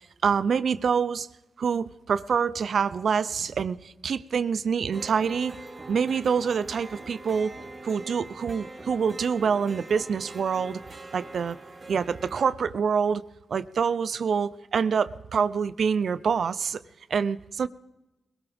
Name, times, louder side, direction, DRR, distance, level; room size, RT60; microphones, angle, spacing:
voice 1, 0.2-1.3 1.6-5.6 5.9-7.6 7.8-10.8 11.1-11.6 11.9-13.2 13.5-16.8 17.1-17.7, right 6 dB, 70° right, 0.6 m, -26 dB
sound 1, 4.9-12.5, right 2 dB, 45° right, 2.0 m, -43 dB
22.0 x 16.5 x 3.6 m
cardioid pair, 50°, 0 cm